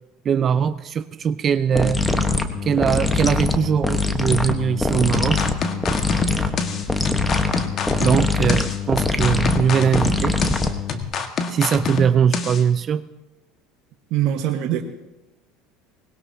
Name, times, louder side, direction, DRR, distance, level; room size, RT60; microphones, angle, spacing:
voice 1, 0.2-2.0 2.6-5.4 8.0-10.4 11.5-13.0, right 7 dB, 40° right, 13 dB, 0.5 m, -21 dB
sound 1, 1.7-11.0, left 3 dB, 10° left, 1.2 m, -23 dB
sound 2, 5.1-12.6, left 4 dB, 45° left, 1.5 m, -27 dB
voice 2, 14.1-14.8, right 11 dB, 65° right, 3 dB, 1.4 m, -24 dB
20.5 x 18.0 x 2.8 m, 0.99 s
supercardioid pair, 95°, 0 cm